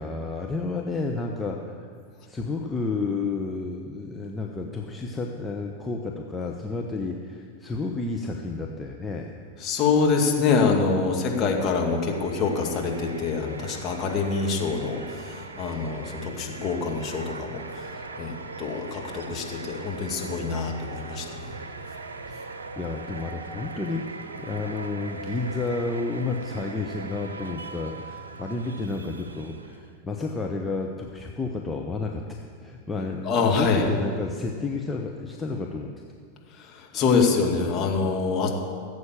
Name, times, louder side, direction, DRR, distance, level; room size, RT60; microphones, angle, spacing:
voice 1, 0.0-1.8 2.3-9.3 22.3-35.9 36.9-37.0, left 3 dB, 10° left, 0 dB, 1.0 m, -31 dB
voice 2, 9.6-21.5 33.2-33.9 36.5-38.5, left 4 dB, 30° left, 0 dB, 2.2 m, -25 dB
sound 1, 11.5-30.0, right 3 dB, 70° right, 0.9 m, -40 dB
17.0 x 8.1 x 7.4 m, 2.1 s
figure-of-eight pair, 90°, 0 cm